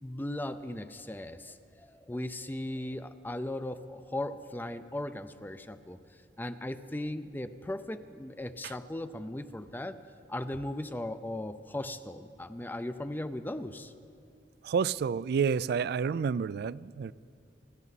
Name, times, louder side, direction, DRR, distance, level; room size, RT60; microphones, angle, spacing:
voice 1, 0.0-6.0 6.4-10.0 10.3-13.9, left 1 dB, 10° left, 11 dB, 0.5 m, -37 dB
voice 2, 14.6-17.1, right 6 dB, 60° right, 20 dB, 0.3 m, -29 dB
27.5 x 12.0 x 4.1 m, 2.5 s
head